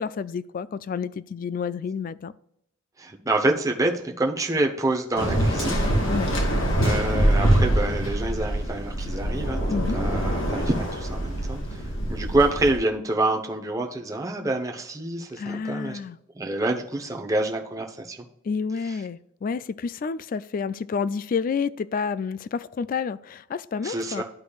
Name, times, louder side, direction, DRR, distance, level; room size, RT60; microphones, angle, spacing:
voice 1, 0.0-2.3 6.1-6.3 9.7-10.0 15.4-16.2 18.4-24.2, left 5 dB, 45° left, 17 dB, 0.3 m, -29 dB
voice 2, 3.0-5.8 6.8-9.6 9.9-11.8 12.1-16.0 16.3-18.2 18.9-19.0 23.8-24.2, right 2 dB, 15° right, 2 dB, 0.8 m, -27 dB
Waves surf, 5.2-12.8, right 1 dB, 65° left, 1.9 m, -24 dB
11.5 x 5.1 x 2.3 m, 0.76 s
head